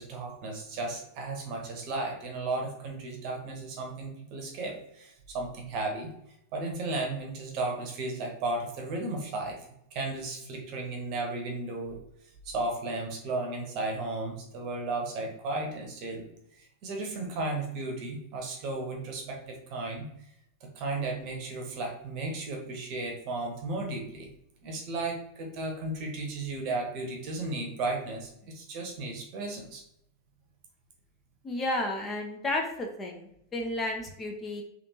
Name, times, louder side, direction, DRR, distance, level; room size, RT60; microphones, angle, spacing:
voice 1, 0.0-6.1 6.5-9.6 9.9-12.0 12.4-16.3 16.6-20.1 20.7-24.3 24.6-29.8, right 2 dB, 40° right, 1 dB, 0.9 m, -34 dB
voice 2, 31.4-34.6, left 1 dB, 20° left, 1 dB, 0.5 m, -32 dB
3.4 x 2.4 x 2.7 m, 0.76 s
figure-of-eight pair, 90°, 0 cm